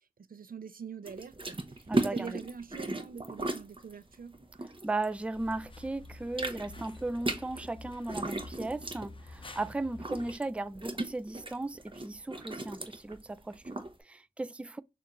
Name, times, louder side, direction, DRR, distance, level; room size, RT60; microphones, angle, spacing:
voice 1, 0.3-4.3, right 6 dB, 75° right, 0.5 m, -44 dB
sound 1, 1.1-5.6 5.9-13.9, right 2 dB, 35° right, 0.8 m, -37 dB
voice 2, 1.9-2.4 4.8-14.8, right 2 dB, 10° right, 0.3 m, -36 dB
sound 2, 5.3-10.4, left 2 dB, 35° left, 0.6 m, -49 dB
6.4 x 2.5 x 3.0 m
wide cardioid pair, 50°, 15 cm